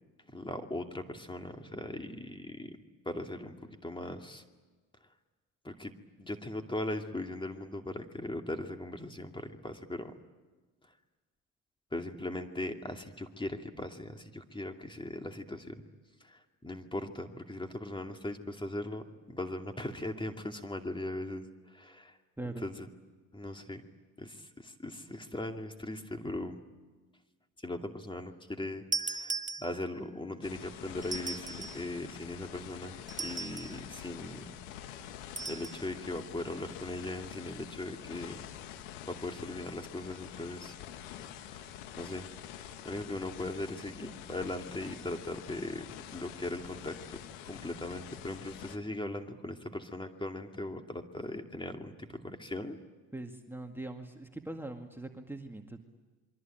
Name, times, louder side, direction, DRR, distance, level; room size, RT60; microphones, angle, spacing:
voice 1, 0.3-2.7 3.1-4.4 5.6-5.9 6.2-10.1 11.9-15.8 16.2-21.5 21.7-22.1 22.6-22.9 23.3-23.8 24.2-26.6 27.6-34.5 35.0-35.1 35.5-38.4 39.0-40.7 41.9-42.3 42.8-47.2 47.4-52.8, left 1 dB, 15° left, 5 dB, 2.5 m, -39 dB
sound 1, 28.9-30.1 31.0-31.9 33.1-33.8 35.4-35.8, right 4 dB, 20° right, 1.4 m, -37 dB
sound 2, 30.4-48.8, left 10 dB, 85° left, 1.7 m, -46 dB
voice 2, 53.1-55.8, right 2 dB, 5° right, 3 dB, 2.0 m, -42 dB
27.5 x 23.0 x 9.1 m, 1.3 s
supercardioid pair, 70°, 35 cm